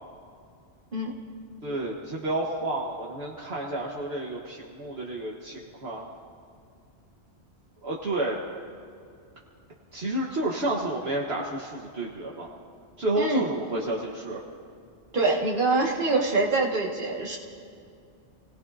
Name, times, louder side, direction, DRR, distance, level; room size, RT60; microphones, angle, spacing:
voice 1, 1.6-6.1 7.8-8.4 9.9-12.5 13.0-14.4, right 1 dB, 65° right, -3 dB, 1.6 m, -30 dB
voice 2, 15.1-17.4, right 3 dB, 50° right, -1 dB, 2.0 m, -25 dB
29.5 x 18.0 x 2.7 m, 2.3 s
omnidirectional pair, 1.2 m